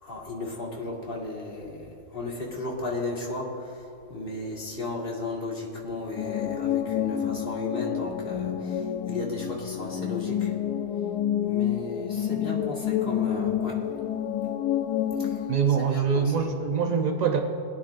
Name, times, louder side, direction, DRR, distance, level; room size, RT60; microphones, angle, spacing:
voice 1, 0.0-10.5 11.4-13.8 15.2-15.4 15.8-16.5, left 2 dB, 35° left, -3 dB, 2.0 m, -35 dB
sound 1, 6.2-15.6, left 10 dB, 90° left, 1.2 m, -28 dB
voice 2, 15.5-17.4, right 6 dB, 85° right, 4 dB, 0.3 m, -24 dB
19.5 x 9.9 x 2.6 m, 2.7 s
omnidirectional pair, 1.7 m